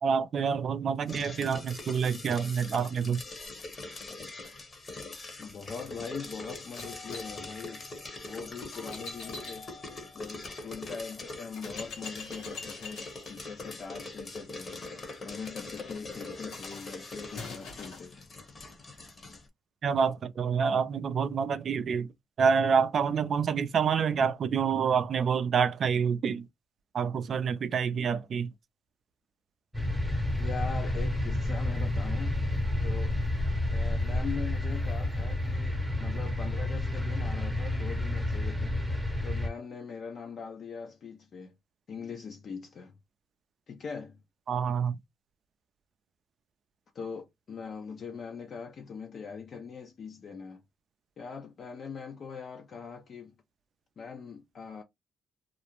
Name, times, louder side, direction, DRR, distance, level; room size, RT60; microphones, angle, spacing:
voice 1, 0.0-3.2 19.8-22.1 22.4-26.5 26.9-28.5 44.5-45.0, right 6 dB, 55° right, 0.4 m, -27 dB
sound 1, 1.1-19.5, left 2 dB, 35° left, 0.8 m, -43 dB
voice 2, 5.4-7.9 8.2-9.7 10.1-14.8 15.2-18.3 30.4-32.4 32.8-33.2 33.7-38.8 39.2-41.5 41.9-42.9 43.7-44.2 46.9-50.6 51.2-53.4 54.0-54.8, left 5 dB, 55° left, 0.5 m, -41 dB
sound 2, 6.8-10.6 11.1-11.2 11.6-18.1, left 3 dB, 90° left, 1.1 m, -46 dB
sound 3, 29.7-39.5, left 1 dB, 5° left, 0.7 m, -30 dB
2.5 x 2.0 x 2.9 m
cardioid pair, 90°, 0 cm